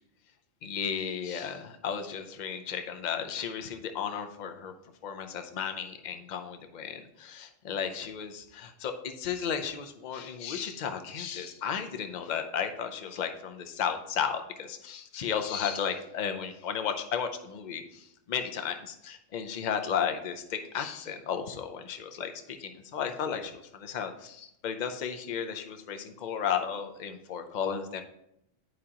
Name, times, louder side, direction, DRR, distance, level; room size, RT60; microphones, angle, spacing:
voice 1, 0.6-4.7 5.0-28.0, left 7 dB, 50° left, 6 dB, 0.6 m, -34 dB
9.5 x 4.9 x 2.9 m, 0.78 s
omnidirectional pair, 1.3 m